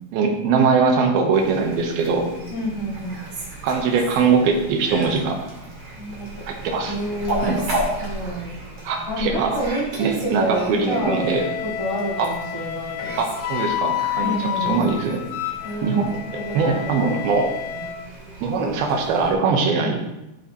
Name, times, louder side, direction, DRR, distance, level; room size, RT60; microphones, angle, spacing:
voice 1, 0.1-2.3 3.6-5.4 6.5-6.9 7.4-7.6 8.8-9.6 10.0-11.4 12.2-12.3 13.2-15.3 15.8-16.1 16.3-17.5 18.4-20.0, right 5 dB, 75° right, 2 dB, 3.0 m, -21 dB
Fowl, 1.3-19.3, right 1 dB, 45° right, 3.3 m, -35 dB
voice 2, 2.5-3.2 6.0-6.5 6.9-7.6 8.0-8.5 9.1-11.3 11.6-13.1 14.2-14.9 15.6-16.0 16.3-17.0 19.8-20.0, right 1 dB, 45° left, -5 dB, 0.4 m, -28 dB
Wind instrument woodwind instrument, 10.9-18.0, left 11 dB, 85° left, 2.6 m, -29 dB
13.0 x 7.3 x 3.1 m, 0.92 s
omnidirectional pair, 4.6 m